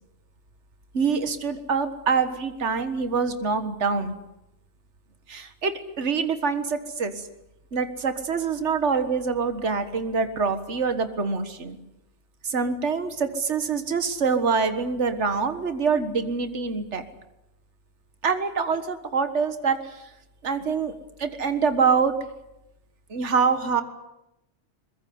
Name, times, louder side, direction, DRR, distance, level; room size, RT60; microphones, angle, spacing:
voice 1, 0.9-4.1 5.3-7.3 7.7-11.8 12.4-17.0 18.2-20.0 20.4-20.9 21.2-22.1 23.1-23.8, right 5 dB, 75° right, 10 dB, 1.9 m, -25 dB
23.0 x 21.5 x 9.4 m, 0.90 s
omnidirectional pair, 1.2 m